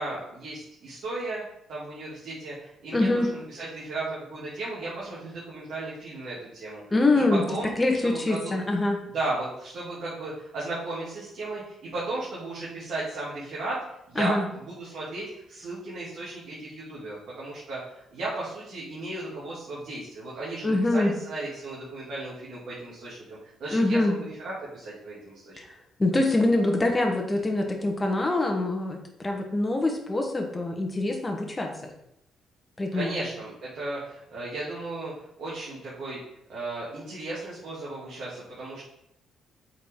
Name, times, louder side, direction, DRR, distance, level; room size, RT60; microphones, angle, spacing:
voice 1, 0.0-1.4 1.7-6.8 7.1-7.7 8.0-8.6 9.0-13.8 14.1-24.0 24.3-25.6 32.9-36.2 36.5-38.8, right 2 dB, 60° right, -9 dB, 2.4 m, -35 dB
voice 2, 2.9-3.3 6.9-7.4 7.8-9.0 14.2-14.5 20.6-21.1 23.7-24.2 25.6-25.7 26.0-31.7 32.8-33.1, left 2 dB, 15° left, 2 dB, 1.2 m, -24 dB
8.3 x 4.8 x 3.7 m, 0.79 s
cardioid pair, 130°, 0 cm